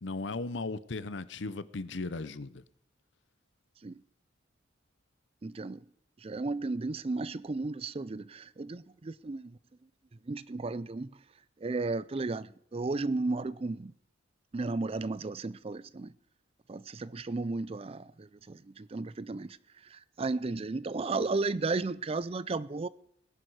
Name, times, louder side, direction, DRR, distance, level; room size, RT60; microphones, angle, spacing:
voice 1, 0.0-2.6, left 3 dB, 65° left, 0.7 m, -37 dB
voice 2, 5.4-5.8 6.2-9.6 10.2-11.2 11.6-13.9 14.5-16.1 16.7-22.9, right 3 dB, 30° right, 0.4 m, -34 dB
19.5 x 11.0 x 4.8 m
head